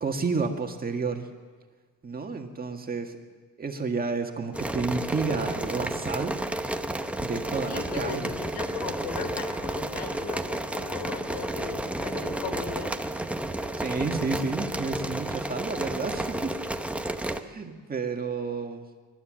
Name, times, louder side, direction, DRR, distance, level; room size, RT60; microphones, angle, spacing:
voice 1, 0.0-1.3 2.0-3.2 3.6-6.3 7.2-8.3 13.8-16.6 17.4-18.8, right 4 dB, 25° right, 3 dB, 1.8 m, -31 dB
sound 1, 4.5-17.4, right 1 dB, 5° right, 0.8 m, -31 dB
voice 2, 7.7-12.9, left 5 dB, 85° left, 7 dB, 3.4 m, -37 dB
28.5 x 12.5 x 7.6 m, 1.5 s
cardioid pair, 135°, 36 cm